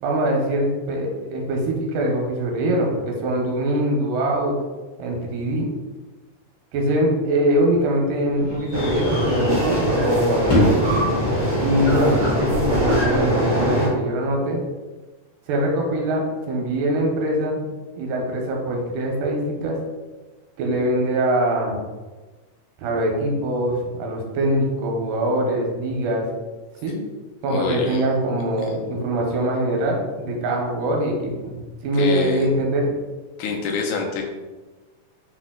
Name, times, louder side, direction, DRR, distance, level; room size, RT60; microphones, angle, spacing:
voice 1, 0.0-4.6 5.0-5.7 6.7-11.0 11.6-14.6 15.5-17.7 18.0-19.8 20.6-21.8 22.8-26.3 26.8-27.0 27.4-32.9, right 1 dB, 90° right, 0 dB, 2.4 m, -23 dB
sound 1, 7.2-13.2, equal, 45° left, 1.4 m, -28 dB
sound 2, 8.7-13.9, equal, 75° right, 0.4 m, -22 dB
voice 2, 27.5-28.1 31.9-32.5 33.4-34.2, left 4 dB, 80° left, 1 dB, 2.0 m, -26 dB
5.4 x 2.3 x 3.6 m, 1.3 s
omnidirectional pair, 3.6 m